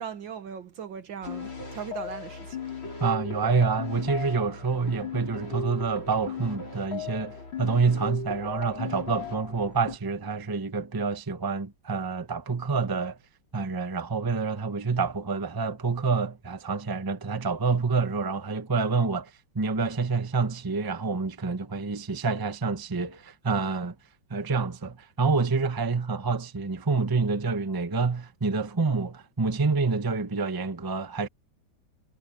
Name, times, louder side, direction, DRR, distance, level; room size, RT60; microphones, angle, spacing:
voice 1, 0.0-2.6, right 7 dB, 70° right, 2.3 m, -38 dB
sound 1, 1.2-10.0, left 5 dB, 90° left, 6.9 m, -37 dB
voice 2, 3.0-13.2 13.5-23.9 24.3-31.3, right 4 dB, 15° right, 0.9 m, -27 dB
omnidirectional pair, 2.1 m